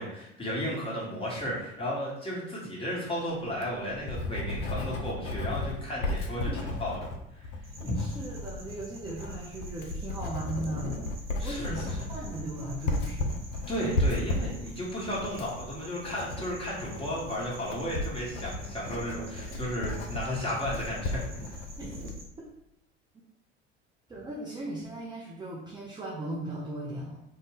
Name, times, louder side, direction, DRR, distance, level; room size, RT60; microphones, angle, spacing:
voice 1, 0.0-7.1 7.3-7.5 7.8-8.0 11.4-11.9 13.7-21.5, equal, 15° left, -6 dB, 1.3 m, -34 dB
Writing, 3.4-22.2, left 2 dB, 70° left, 0.6 m, -35 dB
sound 1, 7.6-22.2, right 2 dB, 35° right, 0.8 m, -47 dB
voice 2, 7.8-11.0 11.4-13.4 21.8-22.0 22.4-22.5 24.1-27.2, right 1 dB, 10° right, -4 dB, 0.5 m, -37 dB
2.6 x 2.2 x 3.3 m, 0.85 s
figure-of-eight pair, 65°, 36 cm